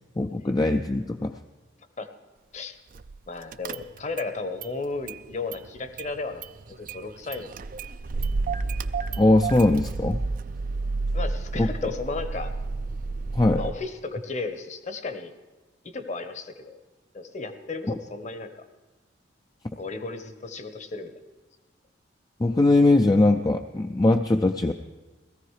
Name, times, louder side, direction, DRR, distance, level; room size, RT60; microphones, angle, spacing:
voice 1, 0.2-1.4 9.2-10.2 11.6-11.9 13.3-13.7 22.4-24.7, left 2 dB, 20° left, 6 dB, 0.4 m, -21 dB
Car / Engine starting, 3.0-3.2 3.5-4.3 4.6-5.7 6.0-13.7, right 3 dB, 45° right, 0.4 m, -31 dB
voice 2, 3.3-6.4 6.7-7.5 11.1-12.5 13.6-15.3 15.8-16.8 17.1-18.6 19.8-21.1, left 3 dB, 40° left, 9 dB, 1.0 m, -34 dB
17.5 x 14.0 x 4.8 m, 1.2 s
head